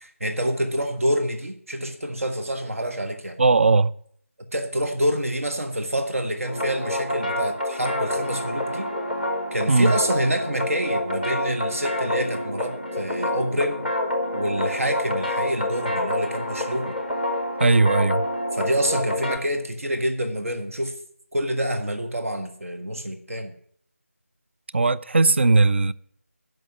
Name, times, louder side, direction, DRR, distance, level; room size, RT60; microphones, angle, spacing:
voice 1, 0.0-3.4 4.5-8.9 9.5-13.9 14.3-16.9 18.5-21.0 21.3-23.5, equal, 70° right, 1.5 m, -27 dB
voice 2, 3.4-3.9 9.7-9.9 17.6-18.3 24.7-25.9, right 3 dB, 55° right, 0.4 m, -18 dB
sound 1, 6.4-19.4, left 1 dB, 5° right, 0.7 m, -27 dB
12.5 x 5.4 x 8.3 m
figure-of-eight pair, 165°, 8 cm